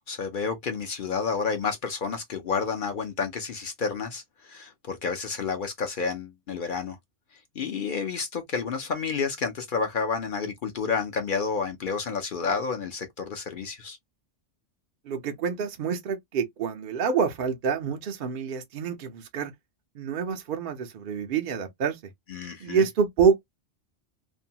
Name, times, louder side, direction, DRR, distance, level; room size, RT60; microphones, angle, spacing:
voice 1, 0.1-7.0 7.6-14.0 22.3-22.8, left 5 dB, 55° left, 0.6 m, -30 dB
voice 2, 15.1-19.5 20.0-22.0 22.6-23.4, right 6 dB, 60° right, 0.6 m, -27 dB
2.6 x 2.1 x 2.6 m
omnidirectional pair, 1.2 m